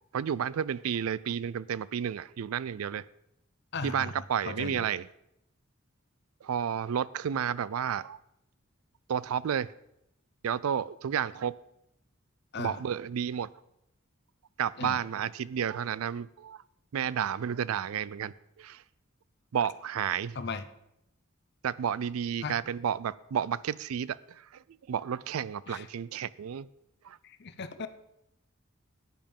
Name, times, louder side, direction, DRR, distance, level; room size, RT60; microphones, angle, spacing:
voice 1, 0.1-3.0 3.8-5.1 6.4-8.2 9.1-9.7 10.4-11.5 12.6-13.5 14.6-16.6 16.9-18.8 19.5-20.4 21.6-24.6 24.9-26.7 27.0-27.2, right 8 dB, 90° right, 20 dB, 0.4 m, -31 dB
voice 2, 3.7-4.9 12.5-12.8 14.8-15.0 20.3-20.6 22.4-22.6 25.7-25.9 27.2-27.9, left 4 dB, 50° left, 12 dB, 0.7 m, -37 dB
10.0 x 9.4 x 5.4 m, 0.81 s
head